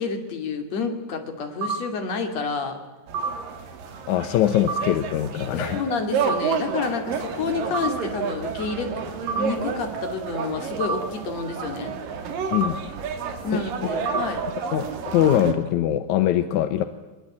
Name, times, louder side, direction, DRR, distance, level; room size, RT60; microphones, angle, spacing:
voice 1, 0.0-2.8 5.5-9.0 9.3-11.9 13.4-14.4, left 4 dB, 50° left, 5 dB, 3.5 m, -29 dB
sound 1, 1.6-1.8 3.1-3.3 4.7-4.8 6.2-6.4 7.7-7.9 9.3-9.4 10.8-11.0 12.5-12.7 14.1-14.2, right 5 dB, 90° right, 4.7 m, -25 dB
sound 2, 3.1-15.5, right 6 dB, 70° right, 3.6 m, -31 dB
voice 2, 4.1-5.8 12.5-12.8 13.5-13.6 14.1-14.2 14.7-16.8, left 11 dB, 70° left, 10 dB, 1.9 m, -22 dB
22.5 x 22.0 x 8.8 m, 1.2 s
omnidirectional pair, 4.2 m